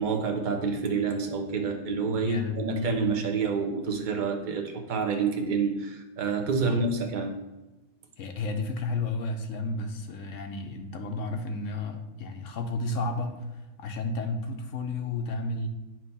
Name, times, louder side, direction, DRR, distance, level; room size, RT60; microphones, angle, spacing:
voice 1, 0.0-7.4, right 5 dB, 40° right, 3 dB, 0.9 m, -28 dB
voice 2, 2.2-3.2 6.6-6.8 8.2-13.4 13.8-15.7, left 3 dB, 65° left, 5 dB, 1.0 m, -32 dB
9.0 x 3.0 x 5.5 m, 1.1 s
omnidirectional pair, 1.5 m